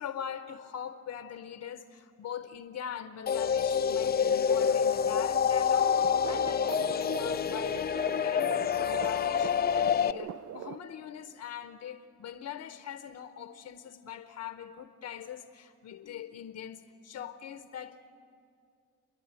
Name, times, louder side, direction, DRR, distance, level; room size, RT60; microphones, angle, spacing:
voice 1, 0.0-18.1, left 9 dB, 70° left, 9 dB, 0.9 m, -42 dB
sound 1, 3.3-10.1, left 7 dB, 30° left, 0.4 m, -27 dB
sound 2, 5.7-10.8, right 11 dB, 55° right, 0.5 m, -41 dB
30.0 x 11.0 x 9.0 m, 2.4 s
cardioid pair, 90°, 30 cm